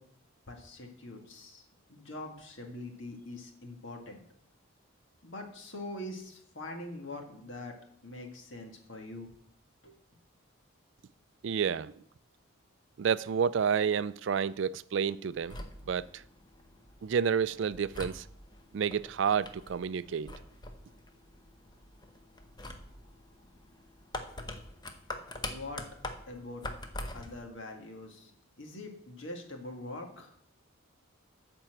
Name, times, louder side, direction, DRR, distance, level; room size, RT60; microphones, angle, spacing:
voice 1, 0.5-1.6 1.9-4.2 5.2-7.7 8.0-9.3 9.8-9.9 25.5-25.8 26.3-26.6 27.1-28.3 28.6-30.3, left 2 dB, 60° left, 1.8 m, -43 dB
voice 2, 11.4-11.9 13.0-15.6 15.9-16.0 17.0-18.2 18.7-20.3, right 7 dB, 60° right, 0.3 m, -29 dB
sound 1, 15.3-27.5, left 2 dB, 20° left, 0.8 m, -45 dB
12.0 x 4.5 x 7.4 m
head